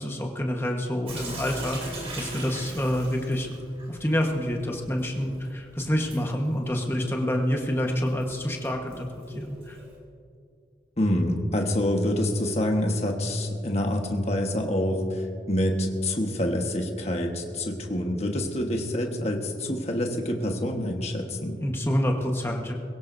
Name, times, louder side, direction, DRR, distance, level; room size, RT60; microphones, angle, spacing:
voice 1, 0.0-3.5 3.9-9.8 21.6-22.7, equal, 15° left, 1 dB, 1.3 m, -27 dB
Sink (filling or washing) / Drip, 1.1-10.0, right 1 dB, 35° right, 3.8 m, -42 dB
voice 2, 11.0-15.0 15.5-21.6, left 1 dB, 35° left, 2 dB, 1.4 m, -26 dB
22.0 x 16.0 x 2.7 m, 2.3 s
head